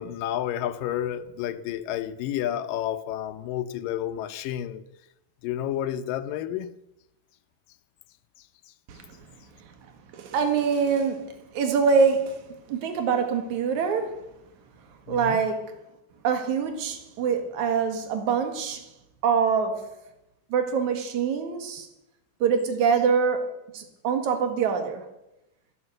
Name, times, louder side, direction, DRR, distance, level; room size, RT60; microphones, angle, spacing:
voice 1, 0.0-4.8 5.4-6.7 15.1-15.4, left 11 dB, 90° left, 2.5 m, -30 dB
voice 2, 10.1-12.4 12.7-14.2 15.1-15.7 16.2-18.9 19.2-19.9 20.5-21.9 22.4-25.0, right 6 dB, 65° right, 3.0 m, -25 dB
15.0 x 11.0 x 7.7 m
omnidirectional pair, 3.8 m